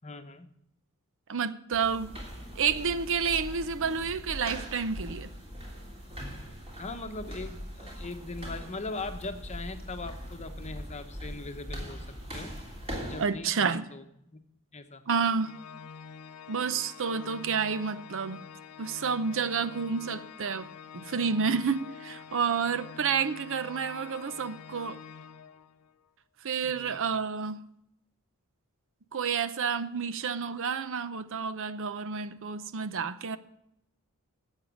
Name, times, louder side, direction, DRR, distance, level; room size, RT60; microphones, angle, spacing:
voice 1, 0.0-0.5 6.8-12.5 13.1-14.4 14.7-15.0 26.6-27.0, left 3 dB, 30° left, 1.0 m, -40 dB
voice 2, 1.3-2.1 2.6-5.3 13.2-13.8 15.1-15.5 16.5-18.4 18.8-20.7 20.9-25.0 26.4-27.6 29.1-33.4, right 6 dB, 60° right, 0.6 m, -30 dB
sound 1, 1.7-13.3, equal, 30° right, 3.2 m, -41 dB
Organ, 15.4-26.0, left 6 dB, 75° left, 0.5 m, -46 dB
12.0 x 8.2 x 6.2 m
head